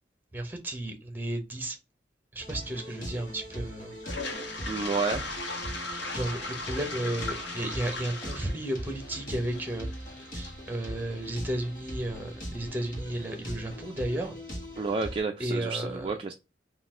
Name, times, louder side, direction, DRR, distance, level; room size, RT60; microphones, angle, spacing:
voice 1, 0.3-1.8 2.3-3.9 6.1-9.9 10.3-14.4 15.4-16.1, right 1 dB, 10° right, 0.9 m, -33 dB
sound 1, 2.4-15.2, equal, 50° left, 1.4 m, -40 dB
Toilet flush, 4.0-11.9, left 2 dB, 70° left, 1.1 m, -38 dB
voice 2, 4.7-5.3 14.8-16.3, right 4 dB, 30° right, 0.3 m, -30 dB
4.0 x 2.5 x 3.6 m
head